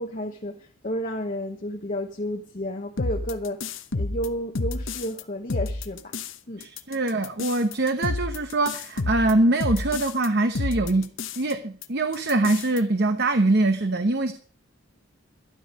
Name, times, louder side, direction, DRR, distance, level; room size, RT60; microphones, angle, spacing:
voice 1, 0.0-6.1 6.5-6.6, equal, 35° left, 1.0 m, -32 dB
sound 1, 3.0-5.2 5.5-6.3 6.6-10.3 10.5-11.5 11.8-11.9 12.1-12.8, left 2 dB, 60° left, 0.9 m, -30 dB
voice 2, 6.6-11.1 11.4-14.3, right 2 dB, 50° right, 0.9 m, -23 dB
13.0 x 11.5 x 5.2 m
head